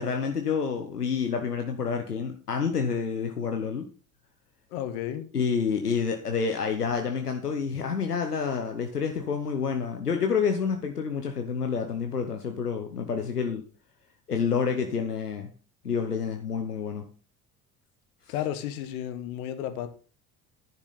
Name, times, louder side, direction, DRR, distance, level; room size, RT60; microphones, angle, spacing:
voice 1, 0.0-3.9 5.3-13.6 14.3-15.5 15.8-17.1, left 6 dB, 90° left, 0.9 m, -28 dB
voice 2, 4.7-5.3 18.3-19.9, left 11 dB, 70° left, 1.4 m, -32 dB
10.5 x 10.0 x 4.1 m
figure-of-eight pair, 50°, 45 cm